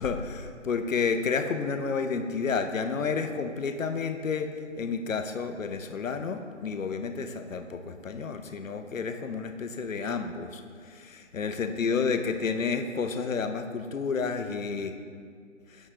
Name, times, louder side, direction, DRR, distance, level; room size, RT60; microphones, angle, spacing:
voice 1, 0.0-10.6 10.9-14.9, left 5 dB, 80° left, 7 dB, 0.7 m, -30 dB
6.7 x 6.3 x 2.9 m, 2.1 s
figure-of-eight pair, 155°, 39 cm